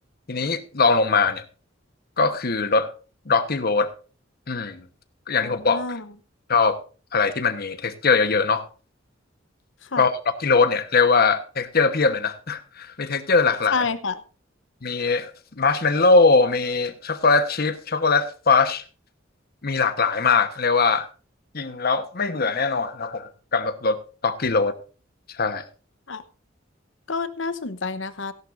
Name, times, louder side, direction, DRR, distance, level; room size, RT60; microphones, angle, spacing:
voice 1, 0.3-1.4 2.2-2.9 3.3-3.9 4.5-4.8 5.3-5.8 6.5-6.8 7.1-8.6 10.0-13.8 14.8-18.8 19.6-21.1 21.5-24.0 24.2-24.7 25.3-25.6, left 4 dB, 55° left, 1.2 m, -21 dB
voice 2, 5.4-6.1 9.8-10.1 13.7-14.2 26.1-26.2 27.1-28.3, left 4 dB, 70° left, 0.9 m, -28 dB
16.0 x 11.0 x 2.6 m
head